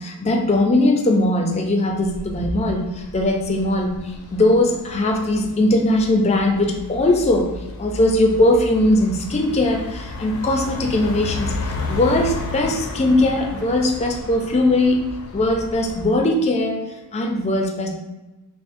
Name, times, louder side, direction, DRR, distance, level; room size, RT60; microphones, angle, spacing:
voice 1, 0.0-7.5 7.8-11.5 11.9-15.0 15.3-16.8 17.1-17.9, left 1 dB, 30° left, 2 dB, 0.4 m, -19 dB
sound 1, 2.0-16.2, left 2 dB, 75° left, 0.6 m, -33 dB
5.9 x 2.1 x 2.5 m, 1.1 s
head